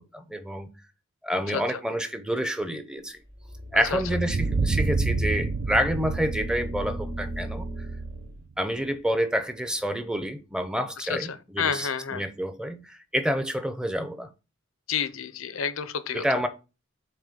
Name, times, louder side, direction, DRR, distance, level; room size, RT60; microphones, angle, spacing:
voice 1, 0.1-0.7 1.2-3.2 3.7-7.7 8.6-14.3 16.1-16.5, equal, 5° right, 0.6 m, -28 dB
sound 1, 3.3-8.4, right 1 dB, 70° right, 3.4 m, -33 dB
sound 2, 4.2-8.8, right 5 dB, 50° right, 0.3 m, -30 dB
voice 2, 11.0-12.2 14.9-16.2, left 7 dB, 80° left, 0.7 m, -30 dB
7.6 x 3.1 x 5.1 m
head